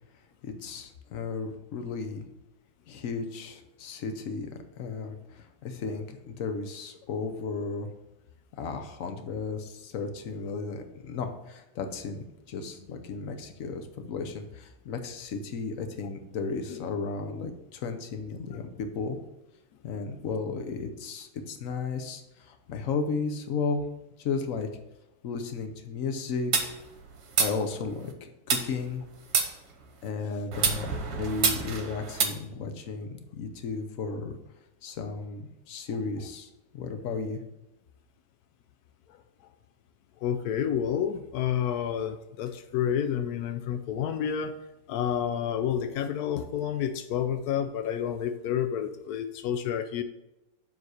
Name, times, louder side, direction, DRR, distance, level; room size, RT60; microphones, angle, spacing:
voice 1, 0.4-2.3 2.9-4.5 4.8-7.9 8.6-19.2 19.8-22.2 22.5-23.8 24.2-24.7 25.2-26.7 27.4-29.0 30.0-34.3 34.8-37.4, left 4 dB, 55° left, 6 dB, 0.9 m, -34 dB
sound 1, 26.5-28.1 28.5-30.1 30.5-32.2, right 5 dB, 55° right, 1.4 m, -28 dB
voice 2, 40.2-44.5 44.9-50.0, left 9 dB, 90° left, 7 dB, 0.8 m, -29 dB
7.2 x 4.0 x 6.3 m, 0.93 s
omnidirectional pair, 2.2 m